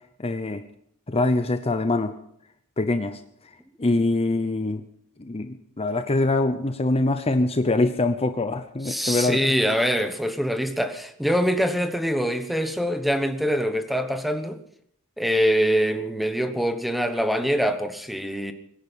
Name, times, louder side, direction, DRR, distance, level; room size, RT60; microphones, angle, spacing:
voice 1, 0.2-0.6 1.1-2.2 2.8-3.2 3.8-4.8 5.2-9.4, left 2 dB, 25° left, 0.7 m, -24 dB
voice 2, 8.8-14.6 15.2-18.5, equal, ahead, 1.1 m, -24 dB
23.5 x 10.5 x 5.5 m
head